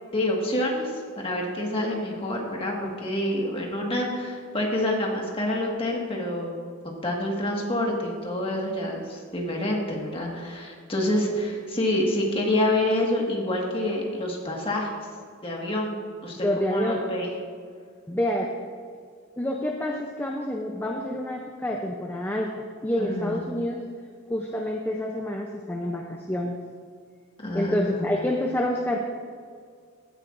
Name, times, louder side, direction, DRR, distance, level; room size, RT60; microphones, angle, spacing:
voice 1, 0.1-6.5 6.8-14.9 15.4-17.3 23.0-23.4 27.4-28.3, left 1 dB, 25° left, -1 dB, 1.6 m, -27 dB
voice 2, 2.8-3.1 16.4-17.0 18.1-18.5 19.4-23.8 24.3-26.6 27.5-29.0, left 1 dB, 10° left, 0 dB, 0.5 m, -28 dB
16.0 x 9.8 x 2.5 m, 2.1 s
head